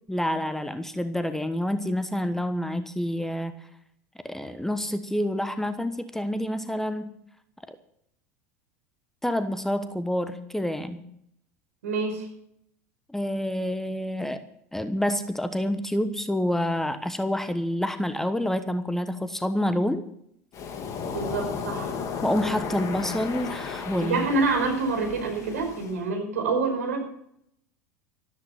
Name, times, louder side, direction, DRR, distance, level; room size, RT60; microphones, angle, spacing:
voice 1, 0.1-3.5 4.2-7.1 9.2-11.0 13.1-14.4 14.7-20.0 22.2-24.3, left 1 dB, 5° left, 11 dB, 1.1 m, -28 dB
voice 2, 11.8-12.3 21.1-21.9 24.0-27.0, right 3 dB, 70° right, 3 dB, 5.4 m, -27 dB
Waves surf, 20.5-26.0, left 6 dB, 40° left, 2.4 m, -34 dB
13.5 x 13.5 x 5.8 m, 0.71 s
figure-of-eight pair, 80°, 9 cm